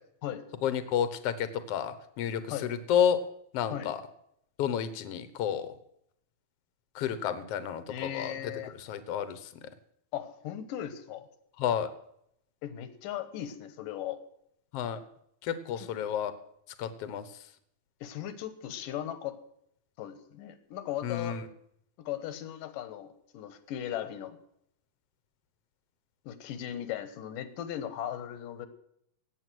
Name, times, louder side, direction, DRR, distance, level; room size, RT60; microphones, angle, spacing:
voice 1, 0.6-3.2 3.5-4.0 4.6-5.7 7.0-8.5 8.8-9.4 11.6-11.9 14.7-15.0 15.4-16.3 16.8-17.2 21.0-21.5, left 9 dB, 60° left, 12 dB, 1.8 m, -30 dB
voice 2, 7.9-8.7 10.1-11.3 12.6-14.2 15.8-15.9 18.0-19.4 20.0-21.4 22.0-24.4 26.3-28.7, left 11 dB, 85° left, 12 dB, 2.8 m, -37 dB
18.5 x 8.2 x 6.2 m, 0.73 s
omnidirectional pair, 3.7 m